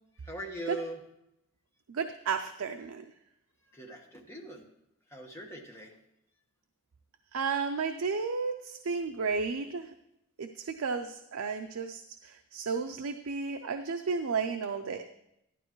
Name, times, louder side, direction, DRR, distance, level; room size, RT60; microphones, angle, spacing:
voice 1, 0.1-1.0 3.7-4.6 5.1-5.9, right 1 dB, 10° left, 0 dB, 1.3 m, -41 dB
voice 2, 1.9-3.0 7.3-9.9 10.4-15.0, right 5 dB, 75° right, 6 dB, 0.5 m, -33 dB
11.5 x 11.5 x 3.1 m, 0.84 s
head